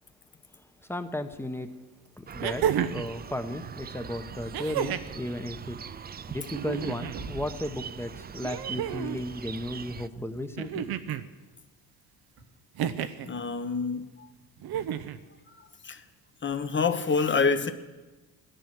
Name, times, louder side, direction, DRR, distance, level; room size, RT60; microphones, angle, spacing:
voice 1, 0.9-1.7 2.2-5.8 6.3-10.9, left 1 dB, 5° left, 1.1 m, -35 dB
sound 1, 1.3-1.4 2.4-3.1 4.5-5.2 6.5-7.2 8.4-9.2 10.6-11.3 12.8-13.3 14.6-15.2 16.5-16.6, right 9 dB, 65° right, 0.9 m, -31 dB
sound 2, 2.3-10.1, right 7 dB, 25° right, 0.4 m, -42 dB
sound 3, 7.0-7.7 9.4-9.5 11.3-11.5 12.4-12.5, right 4 dB, 85° right, 2.3 m, -42 dB
voice 2, 13.2-14.0 15.8-16.0 16.4-17.7, left 5 dB, 30° left, 1.2 m, -26 dB
16.0 x 10.5 x 6.2 m
supercardioid pair, 80°, 40 cm